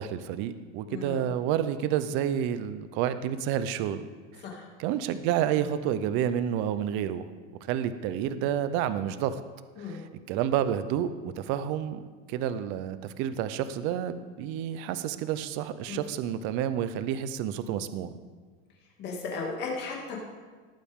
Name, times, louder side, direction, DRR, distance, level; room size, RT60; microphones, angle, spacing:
voice 1, 0.0-4.1 4.3-4.4 4.8-7.3 7.7-9.4 9.8-18.1, right 10 dB, 35° right, 12 dB, 0.5 m, -29 dB
voice 2, 0.9-1.2 4.4-4.7 9.8-10.0 15.9-16.0 19.0-20.2, left 4 dB, 30° left, -1 dB, 2.3 m, -35 dB
19.0 x 9.0 x 3.6 m, 1.4 s
supercardioid pair, 170°, 34 cm